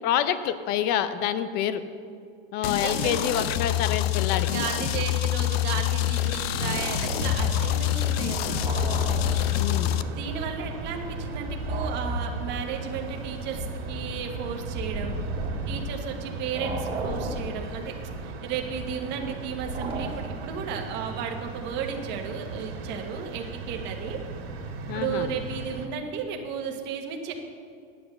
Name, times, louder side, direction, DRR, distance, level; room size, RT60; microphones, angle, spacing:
voice 1, 0.0-1.8 2.5-4.5 9.5-10.0 24.9-25.3, left 10 dB, 30° left, 12 dB, 0.5 m, -27 dB
sound 1, 2.6-10.0, left 13 dB, 75° left, 0.6 m, -26 dB
voice 2, 2.6-3.5 4.5-8.8 10.1-15.1 15.7-17.9 18.2-24.2 24.9-27.3, right 7 dB, 35° right, 3 dB, 1.3 m, -34 dB
sound 2, 6.5-25.9, right 4 dB, 80° right, 2.4 m, -37 dB
sound 3, 7.0-10.1 10.4-16.2 16.5-20.6, right 1 dB, 15° right, 1.8 m, -34 dB
9.8 x 8.4 x 6.5 m, 2.3 s
supercardioid pair, 155°, 31 cm